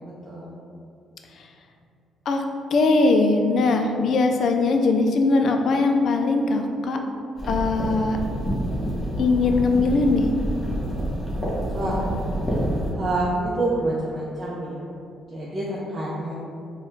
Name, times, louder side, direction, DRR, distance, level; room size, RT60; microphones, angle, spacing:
voice 1, 0.0-0.5 11.7-12.1 12.9-14.9 15.3-16.3, right 2 dB, 25° right, -7 dB, 0.6 m, -27 dB
voice 2, 2.7-7.0 7.5-8.2 9.2-10.3, left 3 dB, 60° left, 4 dB, 0.4 m, -20 dB
sound 1, 7.4-12.9, equal, 5° left, 1.3 m, -27 dB
4.2 x 2.3 x 3.8 m, 2.5 s
cardioid pair, 90°, 0 cm